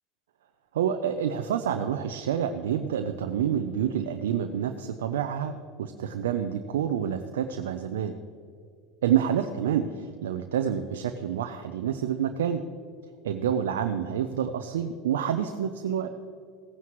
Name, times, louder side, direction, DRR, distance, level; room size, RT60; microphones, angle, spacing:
voice 1, 0.7-8.1 9.0-12.6 13.2-16.1, right 9 dB, 90° right, 7 dB, 0.6 m, -28 dB
16.5 x 9.4 x 3.1 m, 2.2 s
hypercardioid pair, 100°, 0 cm